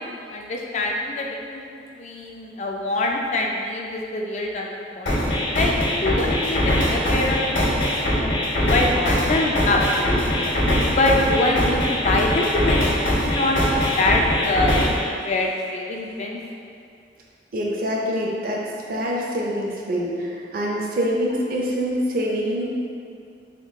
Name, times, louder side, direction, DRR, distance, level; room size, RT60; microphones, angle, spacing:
voice 1, 0.3-1.6 2.0-5.2 5.5-5.7 6.0-7.8 8.1-10.5 10.9-13.6 14.0-14.9 15.2-16.4, left 2 dB, 40° left, -1 dB, 0.3 m, -24 dB
sound 1, 5.1-15.1, equal, 85° left, 1.4 m, -22 dB
voice 2, 17.5-22.7, equal, 55° right, -3 dB, 0.5 m, -25 dB
3.6 x 2.3 x 3.5 m, 2.4 s
head